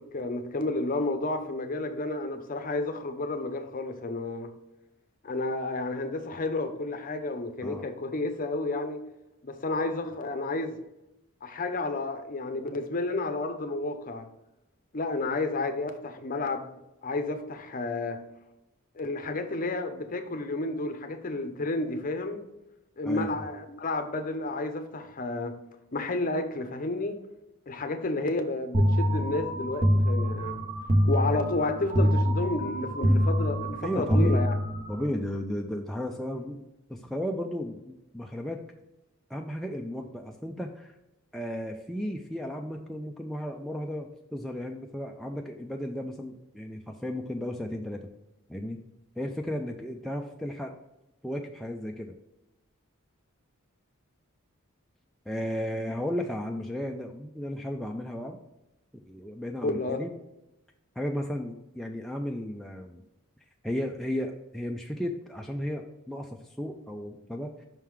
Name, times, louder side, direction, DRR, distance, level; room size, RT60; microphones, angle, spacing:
voice 1, 0.0-4.5 5.2-9.0 9.4-10.8 11.4-14.3 14.9-16.7 17.0-18.2 18.9-22.5 23.0-25.6 25.9-27.2 27.7-30.7 31.0-34.5 59.6-60.0, left 2 dB, 40° left, 7 dB, 0.6 m, -31 dB
sound 1, 28.7-35.1, equal, 30° right, 0.7 m, -25 dB
voice 2, 33.8-34.4 34.9-38.6 39.3-40.9 41.3-48.1 48.5-48.8 49.2-50.7 51.2-52.1 55.3-58.4 58.9-60.1 61.0-63.0 63.6-67.7, equal, ahead, 1 dB, 0.3 m, -34 dB
5.6 x 3.7 x 4.6 m, 0.92 s
head